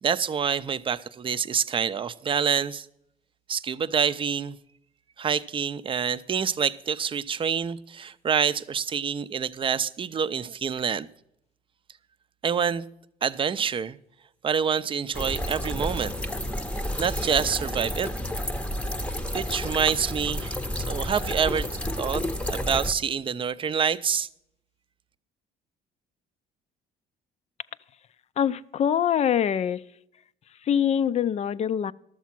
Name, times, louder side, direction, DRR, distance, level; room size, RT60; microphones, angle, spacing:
voice 1, 0.0-2.9 3.5-4.6 5.2-11.1 12.4-12.9 13.2-14.0 14.4-16.1 17.0-18.1 19.3-20.6 20.9-21.7 22.0-24.3, right 7 dB, 30° right, 0.5 m, -27 dB
sound 1, 15.1-22.9, left 1 dB, 5° left, 0.7 m, -30 dB
voice 2, 28.4-29.8 30.7-31.9, left 9 dB, 40° left, 0.4 m, -24 dB
12.5 x 7.2 x 5.9 m
cardioid pair, 110°, 17 cm